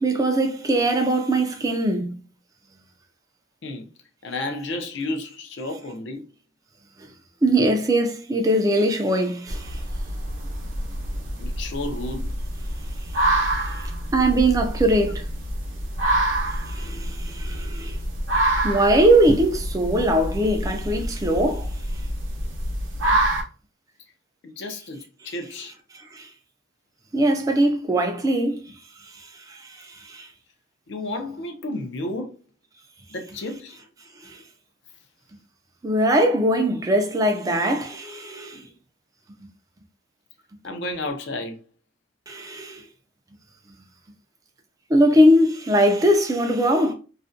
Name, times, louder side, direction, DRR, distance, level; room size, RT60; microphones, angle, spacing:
voice 1, 0.0-2.2 7.4-9.8 14.1-15.3 16.7-18.0 18.6-21.7 26.1-26.3 27.1-28.7 29.5-30.3 35.8-38.6 42.3-42.8 44.9-46.9, right 1 dB, 20° right, 0.4 m, -21 dB
voice 2, 4.2-6.3 11.4-12.3 24.4-25.7 30.9-32.4 33.1-33.8 40.6-41.6, left 2 dB, 65° left, 0.5 m, -32 dB
sound 1, 9.5-23.4, right 1 dB, 80° right, 0.6 m, -27 dB
2.4 x 2.1 x 2.5 m
head